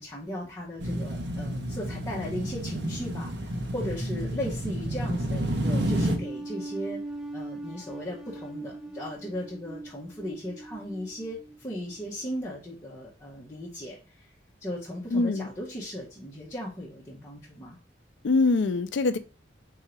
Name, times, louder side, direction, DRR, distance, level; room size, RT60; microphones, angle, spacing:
voice 1, 0.0-7.0 7.3-14.3 14.6-17.8, left 1 dB, 15° left, 0.9 m, -37 dB
sound 1, 0.8-6.2, right 1 dB, 60° right, 1.0 m, -30 dB
sound 2, 5.6-12.0, right 2 dB, ahead, 0.4 m, -40 dB
voice 2, 15.1-15.5 18.2-19.2, left 3 dB, 70° left, 0.4 m, -23 dB
3.8 x 2.8 x 4.4 m
head